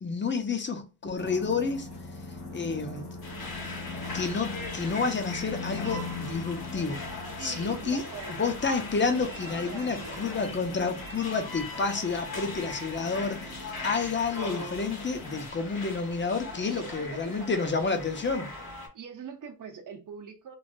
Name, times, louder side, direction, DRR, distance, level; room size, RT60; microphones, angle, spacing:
voice 1, 0.0-1.9 2.5-3.0 4.1-7.0 7.4-8.0 8.3-18.5, left 4 dB, 30° left, 0.6 m, -30 dB
sound 1, 1.2-15.5, left 3 dB, 85° left, 1.0 m, -42 dB
sound 2, 3.2-18.9, left 2 dB, 65° left, 1.3 m, -39 dB
voice 2, 7.4-8.5 9.7-10.3 16.7-17.6 18.1-18.2 18.9-20.6, right 6 dB, 55° right, 0.7 m, -43 dB
3.1 x 2.5 x 2.5 m
wide cardioid pair, 120°, 39 cm